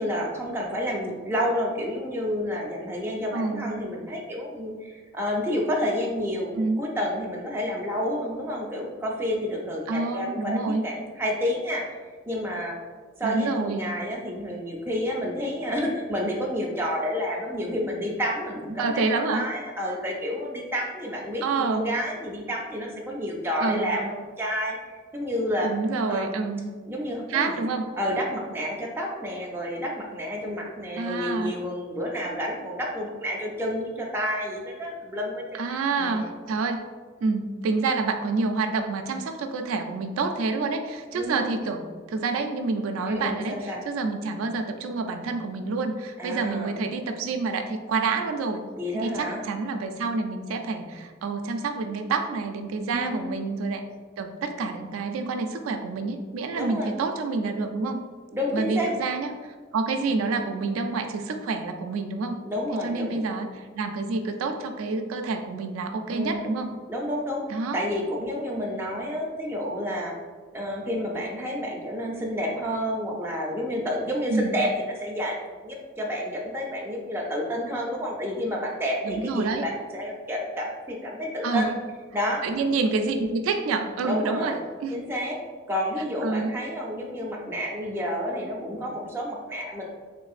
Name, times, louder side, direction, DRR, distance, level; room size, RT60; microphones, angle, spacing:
voice 1, 0.0-11.8 12.3-12.8 13.2-24.8 25.1-25.7 26.1-26.4 26.9-27.6 28.0-35.6 36.0-36.3 41.1-41.5 43.1-43.8 46.2-46.8 48.8-49.4 52.9-53.3 56.5-56.9 58.3-58.9 62.4-63.2 66.1-66.5 66.9-70.1 70.5-81.7 82.1-82.4 84.0-84.6 84.9-85.4 85.7-89.9, equal, 10° right, -2 dB, 0.4 m, -30 dB
voice 2, 3.3-3.7 6.6-6.8 9.9-10.8 13.2-13.9 18.8-19.5 21.4-21.9 23.6-24.0 25.6-26.7 27.3-27.9 31.0-31.6 35.6-36.8 37.2-48.6 48.9-53.8 54.2-58.0 58.5-62.4 62.8-66.7 67.5-67.8 74.3-74.6 79.0-79.7 81.4-81.8 82.4-84.6 84.8-85.0 86.2-86.5, right 3 dB, 85° right, 5 dB, 0.3 m, -28 dB
3.6 x 3.2 x 2.4 m, 1.4 s
head